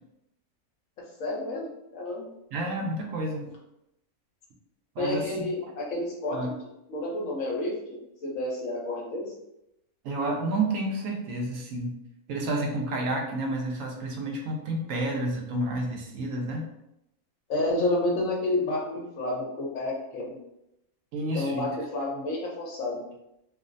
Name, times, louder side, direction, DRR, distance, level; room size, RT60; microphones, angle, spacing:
voice 1, 1.2-1.6 1.9-2.3 5.0-6.5 6.9-9.3 17.5-20.4 21.3-23.0, left 2 dB, 65° left, -3 dB, 1.1 m, -30 dB
voice 2, 2.5-3.5 5.0-5.5 6.3-6.5 10.0-12.0 12.3-16.7 21.1-21.8, right 2 dB, 70° right, 0 dB, 0.9 m, -30 dB
3.1 x 2.0 x 2.5 m, 0.85 s
omnidirectional pair, 1.5 m